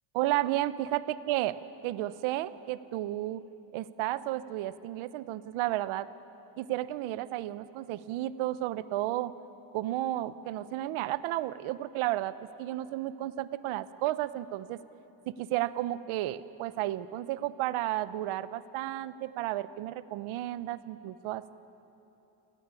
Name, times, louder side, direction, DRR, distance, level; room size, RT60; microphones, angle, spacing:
voice 1, 0.1-3.4 3.7-6.1 6.6-9.3 9.7-14.8 15.3-21.6, right 15 dB, 70° right, 15 dB, 1.0 m, -32 dB
26.5 x 17.0 x 9.8 m, 3.0 s
cardioid pair, 145°, 50 cm